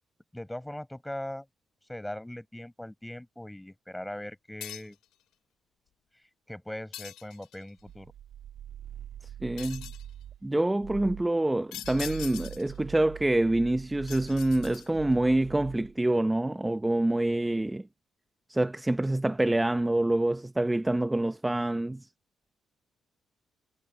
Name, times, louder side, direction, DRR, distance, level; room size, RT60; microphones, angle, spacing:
voice 1, 0.3-1.5 1.9-5.0 6.5-8.1, left 1 dB, 5° left, 5.5 m, -40 dB
sound 1, 4.6-5.1 6.9-7.7 9.6-10.1 11.7-12.8 14.1-15.1, left 13 dB, 90° left, 2.9 m, -43 dB
sound 2, 7.8-10.4 10.8-11.3 11.7-16.0, right 10 dB, 80° right, 2.5 m, -44 dB
voice 2, 9.4-9.9 10.4-17.9 18.5-22.1, right 1 dB, 10° right, 0.7 m, -26 dB
cardioid pair, 90°, 0 cm